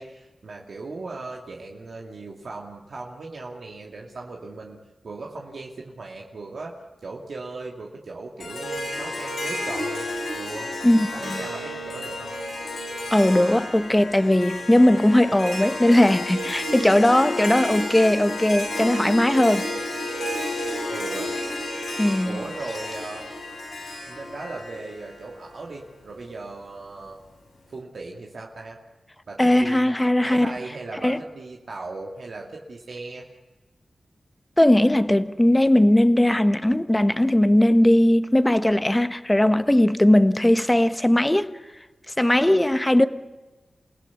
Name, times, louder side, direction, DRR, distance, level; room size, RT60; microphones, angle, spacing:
voice 1, 0.0-4.8 5.0-6.7 7.0-10.0 10.3-10.7 11.1-12.4 20.9-21.3 22.2-23.3 24.1-27.2 27.7-28.8 29.3-29.9 30.2-33.2, right 3 dB, 75° right, 2.4 m, -37 dB
Harp, 8.4-25.7, left 1 dB, 80° left, 7.9 m, -31 dB
voice 2, 10.8-11.4 13.1-19.7 22.0-22.4 29.4-30.6 31.0-31.2 34.6-41.5 42.2-43.1, left 1 dB, 15° left, 1.2 m, -19 dB
28.5 x 17.0 x 8.4 m
cardioid pair, 60°, 0 cm